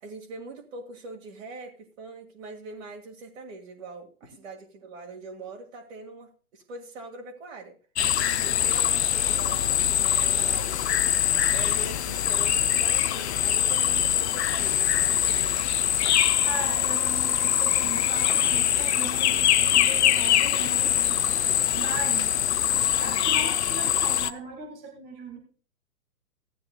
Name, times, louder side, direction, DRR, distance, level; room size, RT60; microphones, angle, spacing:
voice 1, 0.0-7.7 8.2-11.0 11.5-15.6, right 3 dB, 55° right, -1 dB, 2.1 m, -42 dB
sound 1, 8.0-24.3, left 10 dB, 45° left, 0.6 m, -23 dB
voice 2, 16.4-25.4, right 4 dB, 5° right, 2 dB, 0.4 m, -38 dB
16.0 x 9.4 x 2.3 m, 0.38 s
figure-of-eight pair, 125°, 47 cm